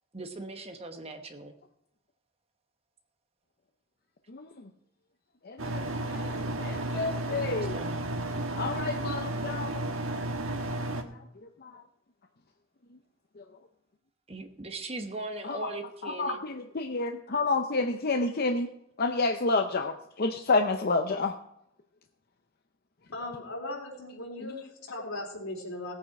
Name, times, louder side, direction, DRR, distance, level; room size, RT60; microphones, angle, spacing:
voice 1, 0.1-1.5 7.7-8.0 14.3-16.4, right 2 dB, 30° right, 6 dB, 1.1 m, -39 dB
voice 2, 5.4-7.8 8.6-9.7 11.6-11.8 15.5-15.7 16.0-16.3 16.8-18.7 19.0-21.4, left 3 dB, 45° left, 5 dB, 0.7 m, -29 dB
sound 1, 5.6-11.0, right 1 dB, 80° right, 1.4 m, -33 dB
voice 3, 23.1-25.9, left 2 dB, 90° left, -1 dB, 3.8 m, -38 dB
17.0 x 8.6 x 4.8 m, 0.76 s
head